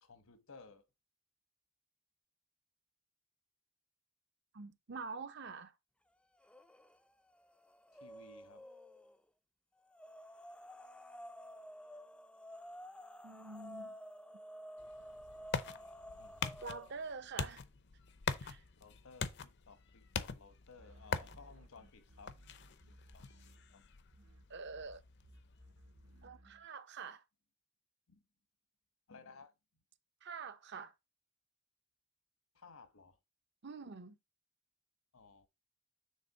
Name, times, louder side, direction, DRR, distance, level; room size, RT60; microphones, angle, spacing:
voice 1, 0.0-0.9 7.9-8.7 16.2-16.5 18.0-18.1 18.7-22.3 22.9-23.9 26.1-26.6 28.1-28.2 29.1-29.5 32.5-33.2 35.1-35.5, left 4 dB, 75° left, 1.1 m, -59 dB
voice 2, 4.5-5.7 13.2-13.9 16.6-17.6 18.4-18.6 24.5-25.0 26.2-27.2 30.2-30.9 33.6-34.2, right 4 dB, 50° right, 0.6 m, -46 dB
sound 1, 6.4-7.0 7.3-9.2 9.9-17.1, equal, 5° left, 0.3 m, -52 dB
sound 2, 14.8-26.3, left 5 dB, 55° left, 0.6 m, -44 dB
sound 3, 20.8-23.8 24.1-26.7, right 1 dB, 70° right, 1.0 m, -60 dB
6.5 x 3.5 x 5.6 m
head